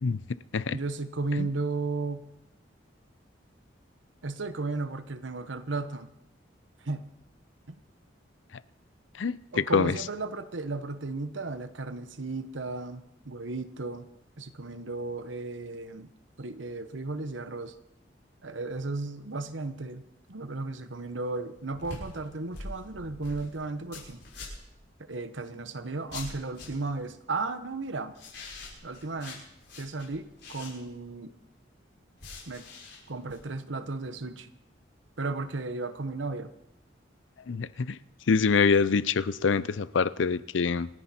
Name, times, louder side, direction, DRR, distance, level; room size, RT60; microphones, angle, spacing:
voice 1, 0.7-2.3 4.2-6.1 6.8-7.1 7.7-7.8 9.5-14.1 14.4-16.1 16.4-17.7 18.4-20.0 20.3-24.2 25.0-28.1 28.8-29.4 29.8-31.3 32.5-32.6 33.1-34.5 35.2-36.5, right 3 dB, 90° right, 1.1 m, -34 dB
voice 2, 9.2-9.9 37.5-38.0 38.3-40.9, left 5 dB, 90° left, 0.5 m, -25 dB
sound 1, 21.6-24.8 26.1-26.9 28.1-31.1 32.2-33.4, left 2 dB, 70° left, 6.2 m, -44 dB
27.0 x 10.0 x 4.3 m
head